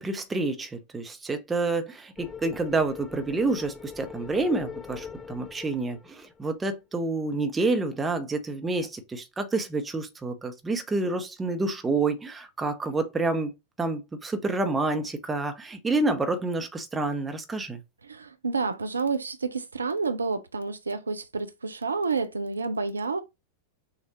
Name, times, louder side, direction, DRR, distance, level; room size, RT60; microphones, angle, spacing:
voice 1, 0.0-13.5 13.8-17.8, right 3 dB, 15° right, 0.9 m, -28 dB
sound 1, 2.2-6.6, left 6 dB, 15° left, 0.5 m, -42 dB
voice 2, 18.1-23.2, right 4 dB, 75° right, 0.5 m, -29 dB
6.3 x 2.5 x 3.1 m
figure-of-eight pair, 90°, 0 cm